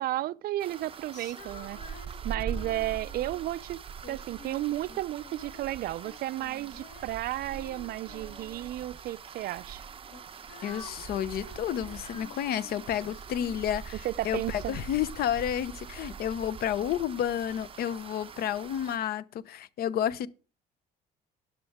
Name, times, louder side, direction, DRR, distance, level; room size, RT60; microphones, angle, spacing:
voice 1, 0.0-1.8 2.2-3.8 4.1-9.8 14.0-14.8, right 15 dB, 65° right, 0.4 m, -33 dB
sound 1, 0.6-19.0, right 7 dB, 30° right, 0.7 m, -43 dB
Female singing, 1.1-3.5 4.0-5.8 6.0-8.9 9.6-14.2, left 2 dB, 45° left, 2.2 m, -50 dB
voice 2, 10.6-20.3, left 10 dB, 65° left, 0.7 m, -31 dB
12.5 x 10.5 x 3.5 m
cardioid pair, 110°, 17 cm